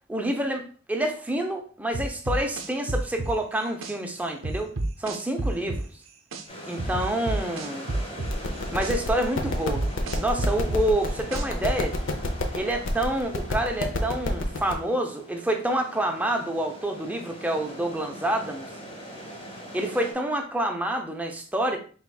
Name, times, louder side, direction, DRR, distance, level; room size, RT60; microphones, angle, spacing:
voice 1, 0.1-4.7 5.0-5.9 6.7-7.9 8.7-9.8 10.1-11.9 12.5-18.6 19.7-21.8, right 1 dB, 10° right, 3 dB, 0.5 m, -28 dB
sound 1, 1.9-3.9 4.4-6.4 6.8-8.9 9.4-11.7, right 2 dB, 85° right, 0.6 m, -29 dB
sound 2, 6.5-20.1, equal, 30° left, 1.2 m, -42 dB
sound 3, 8.2-14.7, left 1 dB, 70° left, 0.6 m, -30 dB
4.5 x 3.5 x 2.2 m, 0.40 s
head